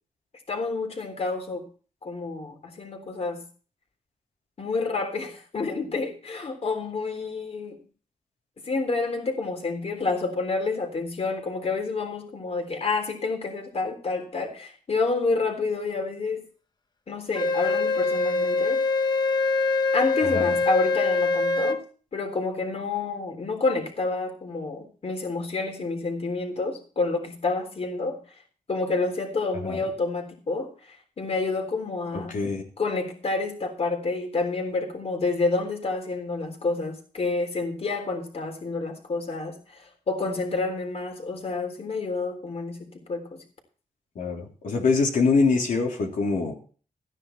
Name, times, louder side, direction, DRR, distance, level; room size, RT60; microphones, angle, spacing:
voice 1, 0.5-1.6 2.0-3.4 4.6-7.8 8.6-16.5 17.1-18.8 19.9-21.8 22.1-28.2 28.7-32.4 32.8-43.4, left 3 dB, 50° left, 3 dB, 3.6 m, -29 dB
Wind instrument woodwind instrument, 17.3-21.8, left 3 dB, 30° left, 1.1 m, -24 dB
voice 2, 20.2-20.6 29.6-29.8 32.3-32.6 44.2-46.5, left 4 dB, 80° left, 0 dB, 3.5 m, -24 dB
13.5 x 10.0 x 4.6 m, 0.40 s
wide cardioid pair, 105°, 14 cm